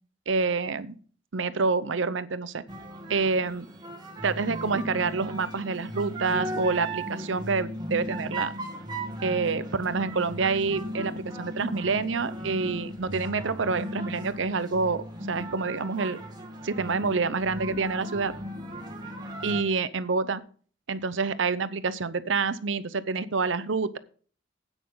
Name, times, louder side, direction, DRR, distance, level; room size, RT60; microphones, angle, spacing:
voice 1, 0.3-1.0 1.3-2.6 3.1-3.7 4.2-8.5 9.2-16.2 16.6-18.3 19.4-20.4 20.9-24.0, right 4 dB, 75° right, 15 dB, 0.7 m, -27 dB
sound 1, 2.7-19.6, right 1 dB, 20° right, 2.0 m, -36 dB
10.0 x 9.1 x 3.9 m, 0.43 s
head